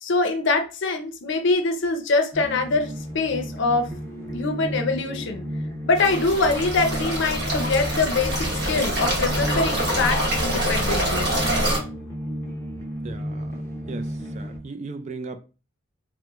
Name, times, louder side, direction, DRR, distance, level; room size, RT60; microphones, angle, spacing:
voice 1, 0.0-3.9 4.3-5.4 5.8-11.3, left 3 dB, 65° left, 0.6 m, -24 dB
sound 1, 2.3-14.6, equal, 15° left, 0.6 m, -33 dB
sound 2, 6.0-11.8, equal, 55° right, 1.1 m, -25 dB
voice 2, 13.0-13.6 13.9-15.4, right 3 dB, 35° right, 0.3 m, -37 dB
3.0 x 2.1 x 3.4 m
head